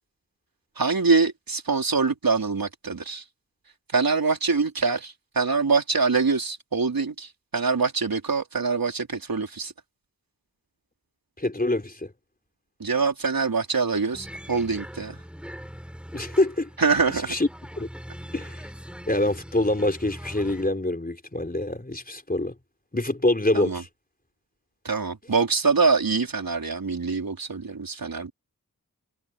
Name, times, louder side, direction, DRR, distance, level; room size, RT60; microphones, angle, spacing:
voice 1, 0.8-3.2 3.9-9.7 12.8-15.2 16.8-17.3 23.5-23.8 24.8-28.3, right 4 dB, 65° right, 4.4 m, -24 dB
voice 2, 11.4-12.1 16.1-16.7 17.1-17.5 17.8-17.9 18.3-18.6 19.1-22.5 22.9-23.9, left 1 dB, 25° left, 4.5 m, -25 dB
sound 1, 14.1-20.7, equal, 5° right, 7.7 m, -41 dB
wide cardioid pair, 60°, 37 cm